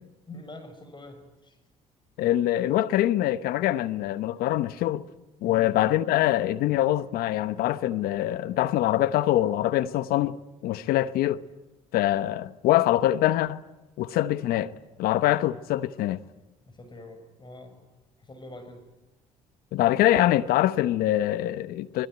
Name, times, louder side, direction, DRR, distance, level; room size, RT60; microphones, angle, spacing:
voice 1, 0.3-1.6 5.4-5.7 16.7-17.8 18.2-18.8, left 1 dB, 30° left, 6.8 m, -45 dB
voice 2, 2.2-5.1 5.4-10.4 10.6-11.4 11.9-13.6 14.0-14.7 15.0-16.2 19.7-22.1, left 14 dB, 75° left, 1.0 m, -24 dB
26.0 x 21.5 x 9.2 m
supercardioid pair, 70°, 16 cm